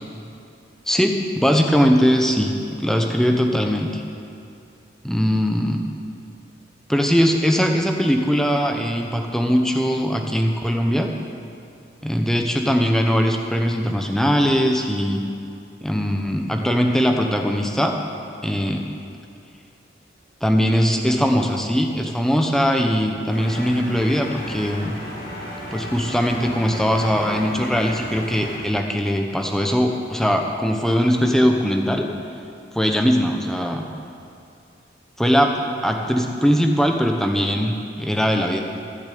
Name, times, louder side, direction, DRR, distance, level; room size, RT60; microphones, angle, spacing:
voice 1, 0.9-4.0 5.0-5.8 6.9-11.1 12.0-15.2 15.8-18.0 18.4-18.9 20.4-25.0 25.7-32.1 32.7-33.8 35.2-38.6, equal, 5° left, 3 dB, 0.9 m, -20 dB
sound 1, 23.3-28.6, left 1 dB, 50° left, 2.4 m, -34 dB
15.5 x 6.9 x 8.6 m, 2.5 s
head